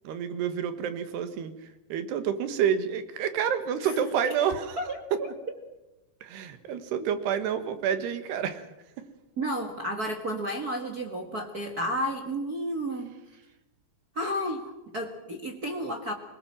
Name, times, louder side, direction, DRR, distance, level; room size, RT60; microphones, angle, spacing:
voice 1, 0.1-1.5 1.9-4.8 6.2-8.6, right 8 dB, 85° right, 10 dB, 3.7 m, -28 dB
voice 2, 4.8-5.3 7.0-7.1 9.4-13.1 14.1-16.1, equal, 50° right, 3 dB, 1.1 m, -32 dB
22.5 x 19.5 x 7.4 m, 0.97 s
omnidirectional pair, 4.6 m